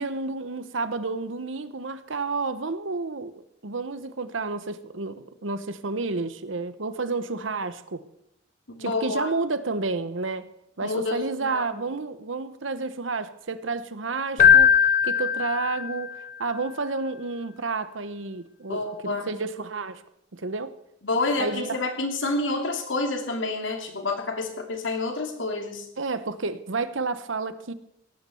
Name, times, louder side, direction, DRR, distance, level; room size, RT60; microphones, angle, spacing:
voice 1, 0.0-8.0 8.8-10.4 10.8-14.7 15.0-20.0 20.3-20.7 21.4-21.8 26.0-27.7, right 3 dB, 85° right, 13 dB, 1.0 m, -30 dB
voice 2, 8.7-9.3 10.8-11.9 18.7-19.4 21.0-25.9, left 3 dB, 80° left, 4 dB, 2.7 m, -29 dB
Keyboard (musical), 14.4-16.2, left 7 dB, 45° left, 0.6 m, -19 dB
17.5 x 9.3 x 7.1 m, 0.80 s
head